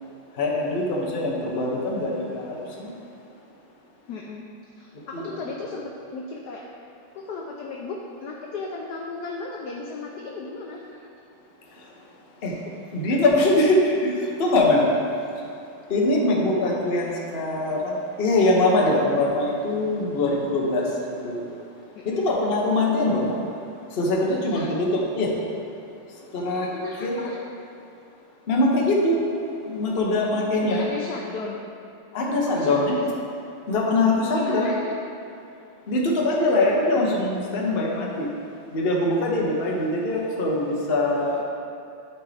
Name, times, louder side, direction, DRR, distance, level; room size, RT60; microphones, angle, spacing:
voice 1, 0.4-2.9 5.1-5.4 12.4-12.5 12.9-14.9 15.9-21.4 22.0-23.4 23.9-25.3 26.3-26.7 27.0-27.3 28.5-29.2 29.7-30.9 32.1-33.0 33.7-34.7 35.9-38.3 38.7-41.4, left 2 dB, 45° left, -2 dB, 0.7 m, -23 dB
voice 2, 4.1-4.5 4.8-6.6 7.1-11.1 12.4-12.5 21.9-22.3 24.5-24.7 26.7-27.4 30.6-31.6 32.5-33.0 34.3-34.9, left 4 dB, 75° left, -1 dB, 0.9 m, -35 dB
11.0 x 4.5 x 3.4 m, 2.6 s
omnidirectional pair, 2.4 m